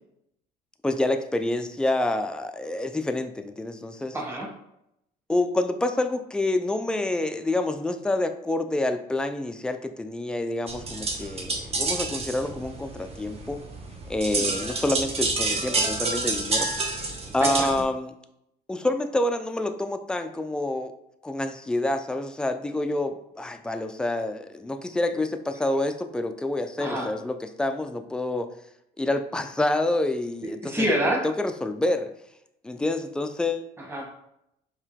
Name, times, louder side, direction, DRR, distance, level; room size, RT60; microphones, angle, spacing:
voice 1, 0.8-4.2 5.3-13.6 14.1-16.7 17.3-18.1 18.7-20.9 21.2-28.5 29.0-30.9 31.2-32.1 32.6-33.7, left 2 dB, 5° left, 7 dB, 0.3 m, -27 dB
voice 2, 4.1-4.5 14.3-14.6 17.4-17.7 25.1-25.2 26.8-27.1 30.6-31.3 33.8-34.1, equal, 15° right, 0 dB, 1.3 m, -27 dB
sound 1, 10.7-17.8, right 3 dB, 35° right, 0.9 m, -29 dB
4.6 x 2.9 x 3.5 m, 0.80 s
cardioid pair, 110°, 17 cm